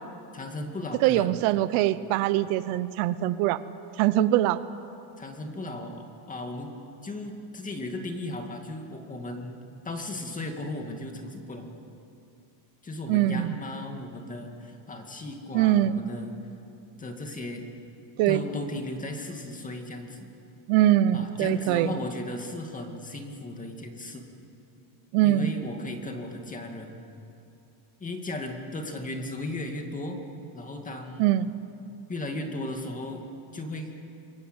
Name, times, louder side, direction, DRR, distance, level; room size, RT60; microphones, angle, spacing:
voice 1, 0.3-1.4 5.2-6.7 7.0-9.6 9.8-11.7 12.8-16.3 17.0-17.6 18.3-20.3 21.1-24.2 25.2-27.0 28.0-30.2 30.5-31.3 32.1-33.2 33.5-33.9, left 2 dB, 15° left, 4 dB, 2.2 m, -36 dB
voice 2, 1.0-3.6 4.0-4.6 13.1-13.6 15.5-16.0 18.2-18.4 20.7-21.9 25.1-25.5 31.2-31.5, right 13 dB, 80° right, 14 dB, 1.1 m, -23 dB
28.0 x 22.0 x 8.1 m, 2.7 s
cardioid pair, 170°, 48 cm